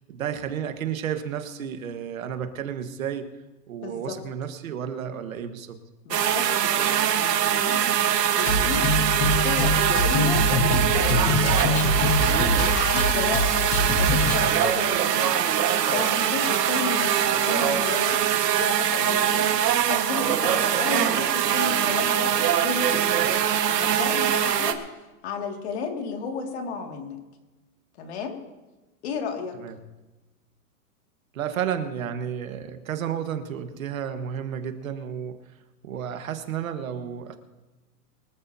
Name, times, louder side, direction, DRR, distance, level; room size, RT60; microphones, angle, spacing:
voice 1, 0.1-3.3 3.7-5.8 29.5-29.7 31.3-35.4 35.8-37.4, right 8 dB, 60° right, 7 dB, 1.6 m, -32 dB
voice 2, 3.8-4.2 6.0-8.9 9.1-12.1 12.6-13.6 14.0-24.8 25.2-27.2 28.0-28.4 29.0-29.6, left 5 dB, 45° left, 3 dB, 2.3 m, -34 dB
sound 1, 6.1-24.7, right 9 dB, 90° right, 1.6 m, -23 dB
Drum kit, 8.5-14.5, left 2 dB, 10° left, 0.6 m, -24 dB
24.0 x 14.5 x 2.8 m, 1.1 s
hypercardioid pair, 170°, 47 cm